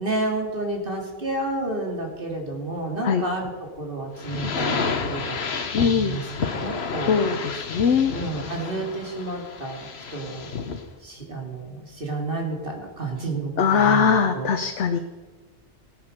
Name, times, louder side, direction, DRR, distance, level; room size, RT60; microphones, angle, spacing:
voice 1, 0.0-5.4 5.8-7.1 8.1-10.5 11.0-14.6, right 2 dB, 50° right, 1 dB, 3.0 m, -30 dB
sound 1, 4.2-10.9, left 5 dB, 65° left, 1.4 m, -30 dB
voice 2, 5.7-6.2 7.1-8.1 13.6-15.0, left 6 dB, 85° left, 6 dB, 1.2 m, -21 dB
16.0 x 9.3 x 6.6 m, 1.2 s
omnidirectional pair, 1.2 m